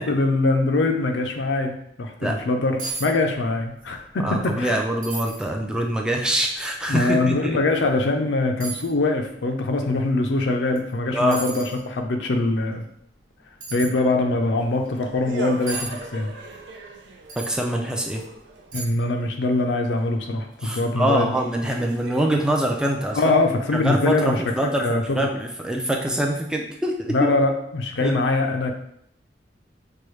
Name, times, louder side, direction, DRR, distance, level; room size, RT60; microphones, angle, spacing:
voice 1, 0.0-4.8 6.9-12.8 13.7-16.3 18.7-21.3 21.7-21.8 23.1-25.3 27.1-28.7, left 2 dB, 75° left, 4 dB, 0.5 m, -23 dB
sound 1, 2.8-3.1 3.4-3.9 4.3-4.4 5.0-5.4 6.1-6.2 7.7-7.8 8.6-8.9 10.7-10.9 11.3-11.8 13.6-13.9 15.7-15.9 17.3-17.6 18.1-18.2 18.7-19.1 19.4-19.5, right 4 dB, 50° right, 1.1 m, -34 dB
voice 2, 4.2-7.6 11.1-11.4 17.4-18.2 20.6-23.3 23.7-27.2 28.0-28.2, right 1 dB, 5° right, 0 dB, 0.4 m, -24 dB
sound 2, 14.5-18.8 20.7-20.8 21.3-23.8, right 2 dB, 85° right, 0.4 m, -39 dB
4.6 x 2.3 x 3.1 m, 0.73 s
head